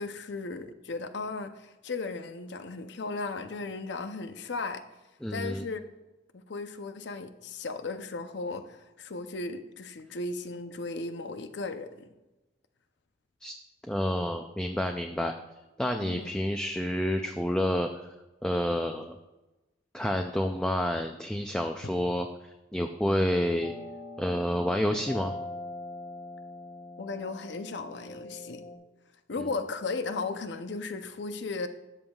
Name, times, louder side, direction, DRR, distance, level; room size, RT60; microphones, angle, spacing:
voice 1, 0.0-4.8 5.3-5.8 6.3-12.1 16.0-16.3 23.1-23.2 27.0-28.6 29.3-31.7, left 3 dB, 65° left, 9 dB, 0.6 m, -36 dB
voice 2, 5.2-5.7 13.4-13.5 13.9-15.3 15.8-18.1 18.4-19.2 19.9-23.7 24.2-25.3, equal, 5° left, 4 dB, 0.3 m, -29 dB
sound 1, 23.6-28.8, left 2 dB, 25° left, 0.9 m, -42 dB
13.0 x 7.2 x 2.3 m, 1.1 s
head